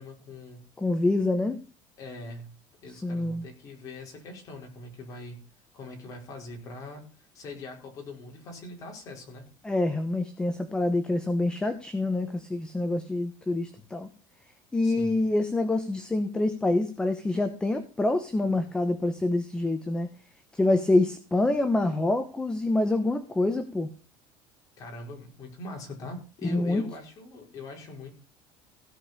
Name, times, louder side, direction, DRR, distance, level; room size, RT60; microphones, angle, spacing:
voice 1, 0.0-0.6 2.0-2.5 2.8-5.4 5.7-7.0 7.3-9.5 14.8-15.2 24.8-28.1, left 2 dB, 35° left, 1 dB, 5.0 m, -42 dB
voice 2, 0.8-1.6 2.9-3.4 9.6-14.1 14.7-20.1 20.5-23.9 26.5-26.8, left 2 dB, 10° left, 8 dB, 1.0 m, -26 dB
16.0 x 5.4 x 6.8 m, 0.36 s
cardioid pair, 160°, 10 cm